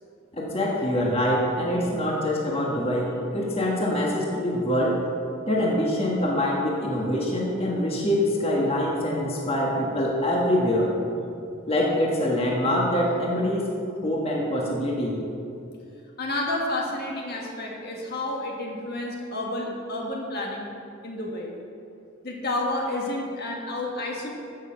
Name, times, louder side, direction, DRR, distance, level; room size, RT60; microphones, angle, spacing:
voice 1, 0.3-5.0 5.5-10.9 11.7-13.7 14.0-15.2, left 1 dB, 30° left, -3 dB, 1.6 m, -24 dB
voice 2, 16.2-20.7 21.0-21.5 22.2-24.3, left 2 dB, 50° left, -1 dB, 1.6 m, -30 dB
15.5 x 6.5 x 5.8 m, 2.6 s
head